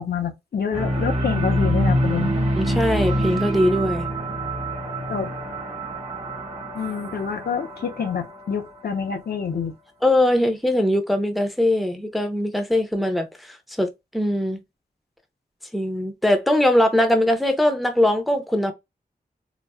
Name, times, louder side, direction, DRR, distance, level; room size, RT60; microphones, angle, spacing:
voice 1, 0.0-2.3 5.1-5.3 6.7-9.7, left 6 dB, 85° left, 0.7 m, -27 dB
sound 1, 0.7-9.0, equal, 40° right, 1.1 m, -26 dB
voice 2, 2.6-4.1 10.0-14.6 15.7-18.7, left 1 dB, ahead, 0.5 m, -21 dB
4.1 x 2.0 x 2.2 m
wide cardioid pair, 115°, 16 cm